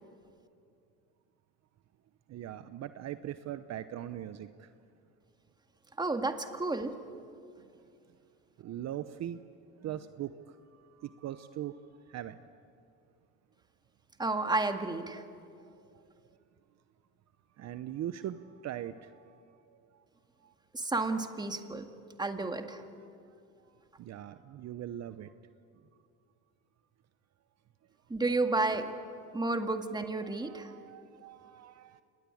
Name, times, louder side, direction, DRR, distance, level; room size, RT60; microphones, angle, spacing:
voice 1, 2.3-4.7 8.6-9.4 9.8-12.4 15.6-16.4 17.6-20.0 20.4-20.5 23.0-23.1 24.0-25.3 30.2-32.0, right 11 dB, 50° right, 12 dB, 0.9 m, -41 dB
voice 2, 6.0-6.9 14.2-15.2 20.7-21.9 22.2-22.8 28.1-28.9 29.3-30.7, right 3 dB, 10° right, 6 dB, 1.9 m, -31 dB
28.0 x 20.5 x 8.6 m, 2.5 s
supercardioid pair, 100°, 34 cm